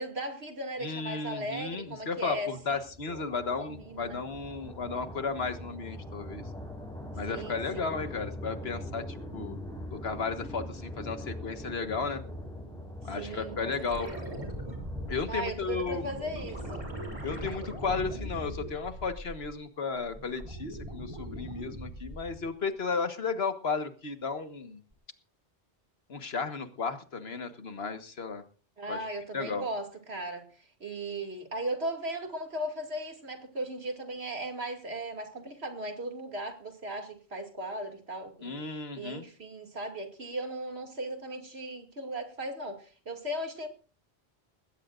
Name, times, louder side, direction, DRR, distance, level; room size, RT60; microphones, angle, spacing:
voice 1, 0.0-2.8 3.1-3.2 3.6-4.2 7.3-7.6 13.1-14.3 15.3-16.8 28.8-38.5 39.0-43.7, right 1 dB, 75° right, 4 dB, 2.8 m, -37 dB
voice 2, 0.8-6.4 7.2-9.6 9.9-12.2 13.0-14.1 15.1-16.0 17.2-24.8 26.1-28.4 28.9-29.0 29.3-29.7 38.4-39.3, left 4 dB, 70° left, 8 dB, 1.7 m, -34 dB
sound 1, 2.0-18.3, left 1 dB, 5° left, 6.0 m, -43 dB
sound 2, 13.8-19.6 20.0-22.5 24.9-25.0, equal, 30° right, 3.5 m, -40 dB
19.5 x 17.0 x 2.5 m, 0.39 s
omnidirectional pair, 1.1 m